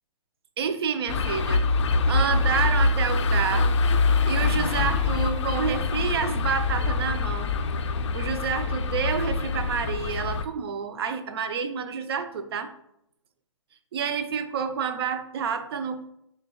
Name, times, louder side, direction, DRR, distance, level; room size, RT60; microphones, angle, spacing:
voice 1, 0.6-1.6 2.1-3.8 4.3-7.5 8.1-12.7 13.9-16.0, right 6 dB, 50° right, 8 dB, 0.5 m, -29 dB
sound 1, 1.1-10.4, left 3 dB, 65° left, 0.4 m, -24 dB
6.3 x 2.3 x 2.3 m, 0.75 s
hypercardioid pair, 155°, 16 cm